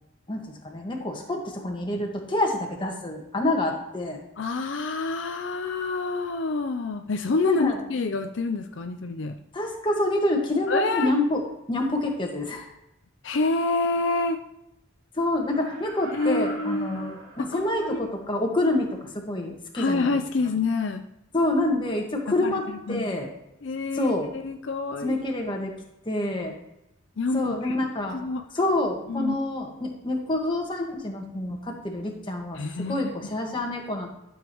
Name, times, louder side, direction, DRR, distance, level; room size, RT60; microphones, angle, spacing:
voice 1, 0.3-4.2 7.4-7.8 9.5-11.4 11.7-12.7 15.1-20.2 21.3-23.3 23.9-24.3 25.0-25.7 26.0-26.5 27.3-28.2 28.5-32.6 32.9-34.1, left 1 dB, 25° left, 0 dB, 1.6 m, -27 dB
voice 2, 4.4-9.3 10.7-11.1 13.2-14.4 16.1-18.1 19.8-21.0 22.4-23.1 23.6-25.2 27.2-27.7 28.1-28.4 29.1-29.3 32.5-33.1, left 3 dB, 65° left, 6 dB, 0.5 m, -27 dB
Laughter, 15.4-18.1 18.6-18.7, right 1 dB, 80° right, 4.0 m, -43 dB
13.0 x 7.2 x 3.0 m, 0.88 s
head